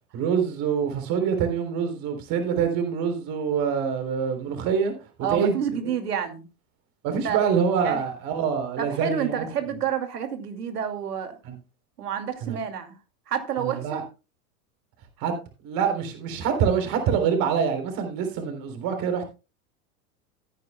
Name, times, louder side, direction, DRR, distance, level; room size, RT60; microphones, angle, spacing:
voice 1, 0.1-4.9 5.3-5.5 5.8-5.9 7.0-9.4 11.4-11.6 12.4-12.6 13.6-14.0 15.2-15.3 15.6-19.3, right 7 dB, 45° right, 3.7 m, -25 dB
voice 2, 5.2-6.5 7.2-7.4 7.8-8.0 8.8-11.4 12.0-13.0 13.3-14.0, right 8 dB, 85° right, 2.4 m, -29 dB
16.5 x 9.9 x 2.2 m
hypercardioid pair, 100°, 46 cm